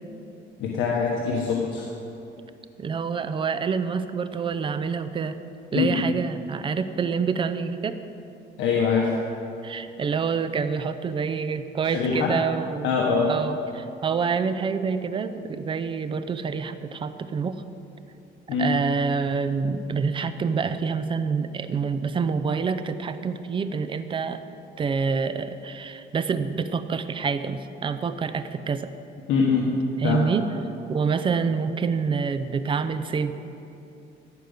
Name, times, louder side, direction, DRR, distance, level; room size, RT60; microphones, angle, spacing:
voice 1, 0.6-1.9 5.7-6.1 8.6-9.1 11.8-12.3 12.8-13.3 18.5-18.7 29.3-29.7 30.0-30.2, left 5 dB, 80° left, -2 dB, 1.3 m, -23 dB
voice 2, 2.8-5.4 5.7-8.0 9.6-13.0 13.2-17.6 18.6-24.4 24.8-28.9 30.0-30.5 30.9-33.3, right 5 dB, 25° right, 11 dB, 0.5 m, -27 dB
15.5 x 5.2 x 8.0 m, 2.8 s
cardioid pair, 165°, 20 cm